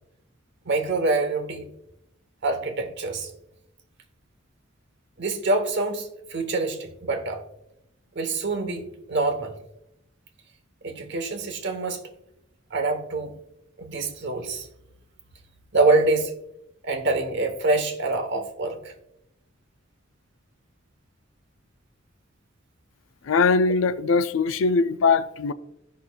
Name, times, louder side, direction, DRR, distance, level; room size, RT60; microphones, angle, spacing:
voice 1, 0.6-1.7 2.4-3.3 5.2-7.4 8.1-9.5 10.8-12.0 12.7-13.3 13.8-14.7 15.7-16.3 16.8-18.9, right 3 dB, 60° right, 1.0 m, -25 dB
voice 2, 23.2-25.5, left 4 dB, 70° left, 0.4 m, -21 dB
13.5 x 5.7 x 2.3 m
head